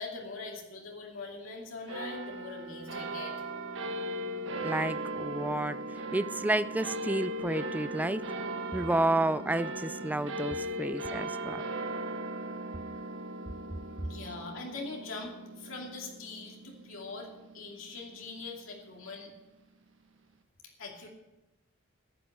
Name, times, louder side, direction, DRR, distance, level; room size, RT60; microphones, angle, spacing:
voice 1, 0.0-3.3 14.0-17.3 17.5-19.3 20.8-21.1, left 3 dB, 85° left, -1 dB, 2.7 m, -42 dB
sound 1, 1.9-18.6, right 1 dB, 70° right, 1.4 m, -38 dB
voice 2, 4.6-5.8 6.1-8.2 8.7-11.6, right 1 dB, 10° right, 14 dB, 0.3 m, -30 dB
14.0 x 9.3 x 6.0 m, 1.0 s
head